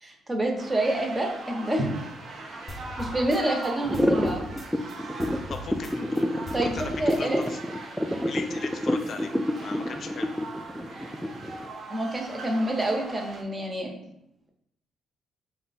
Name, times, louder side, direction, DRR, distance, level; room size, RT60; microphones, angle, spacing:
voice 1, 0.0-1.9 2.7-4.4 6.5-6.7 7.0-7.4 11.9-13.9, right 1 dB, 20° right, 2 dB, 0.8 m, -28 dB
sound 1, 0.6-13.4, right 2 dB, 50° right, 0.7 m, -41 dB
sound 2, 2.7-4.9 5.2-7.5, left 1 dB, 20° left, 0.8 m, -40 dB
sound 3, 3.9-11.7, equal, ahead, 0.3 m, -27 dB
voice 2, 5.5-6.2 6.6-6.9 7.2-7.6 8.3-9.3 9.6-10.3, left 4 dB, 50° left, 7 dB, 0.5 m, -37 dB
4.3 x 2.1 x 4.1 m, 0.76 s
cardioid pair, 90°, 0 cm